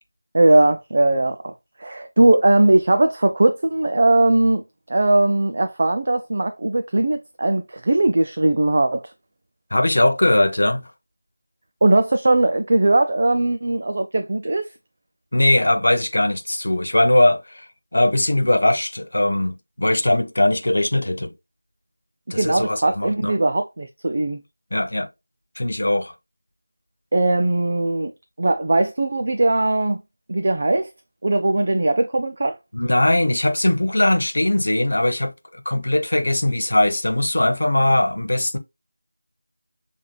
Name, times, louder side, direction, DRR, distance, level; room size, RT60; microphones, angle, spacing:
voice 1, 0.3-1.5 1.8-4.6 4.9-9.1 11.8-14.7 22.4-24.4 27.1-28.1 28.4-30.0 30.3-30.9 31.2-32.6, right 2 dB, 40° right, 0.5 m, -19 dB
voice 2, 9.7-10.9 15.3-17.7 17.9-21.3 22.3-23.3 24.7-25.1 25.6-26.1 32.7-38.6, left 1 dB, 70° left, 1.1 m, -20 dB
6.5 x 3.5 x 2.2 m
figure-of-eight pair, 175°, 0 cm